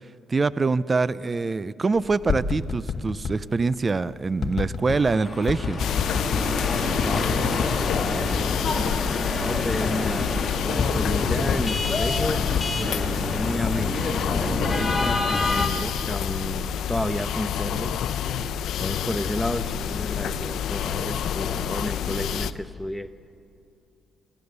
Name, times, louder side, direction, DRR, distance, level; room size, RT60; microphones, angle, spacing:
voice 1, 0.3-5.8, right 4 dB, 30° right, 17 dB, 0.5 m, -24 dB
sound 1, 2.0-3.4 4.4-5.0 5.5-6.5 7.0-7.8 8.2-8.9 9.2-9.3 9.5-10.4 10.8-11.7 12.0-12.8 13.3-16.4 16.8-17.2, left 6 dB, 55° left, 1.1 m, -30 dB
sound 2, 4.9-15.7, left 2 dB, 25° left, 2.9 m, -28 dB
sound 3, 5.8-22.5, left 9 dB, 75° left, 0.6 m, -28 dB
voice 2, 6.7-7.4 7.8-8.8 9.4-12.4 12.8-17.9 18.8-23.1, left 1 dB, 5° left, 10 dB, 0.9 m, -32 dB
26.0 x 15.0 x 6.7 m, 2.6 s
cardioid pair, 90°, 0 cm